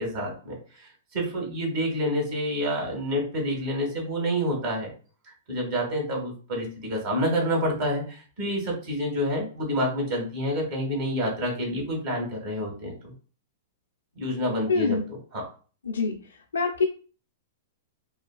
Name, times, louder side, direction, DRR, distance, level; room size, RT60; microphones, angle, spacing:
voice 1, 0.0-4.9 5.5-13.1 14.2-15.5, equal, 55° right, -1 dB, 1.4 m, -28 dB
voice 2, 14.7-15.0 15.8-16.2 16.5-16.8, left 4 dB, 85° left, 1 dB, 0.3 m, -24 dB
3.0 x 2.3 x 2.3 m, 0.39 s
hypercardioid pair, 110°, 0 cm